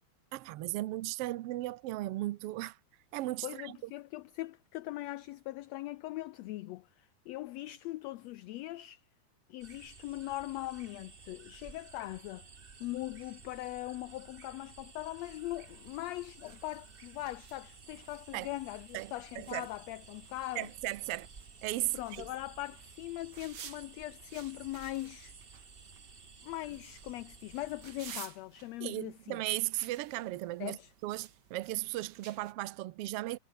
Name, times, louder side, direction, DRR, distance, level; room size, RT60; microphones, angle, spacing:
voice 1, 0.3-2.8 3.1-3.8 18.3-18.5 18.9-19.7 20.5-21.3 21.6-22.3 28.8-30.8 31.0-33.4, right 18 dB, 80° right, 1.3 m, -36 dB
voice 2, 3.4-9.0 9.5-12.5 12.8-20.7 21.9-25.3 26.4-29.4 30.6-30.9, left 17 dB, 75° left, 1.6 m, -41 dB
sound 1, 9.6-28.2, right 4 dB, 30° right, 1.0 m, -54 dB
sound 2, 15.2-32.5, right 8 dB, 50° right, 1.4 m, -55 dB
omnidirectional pair, 3.5 m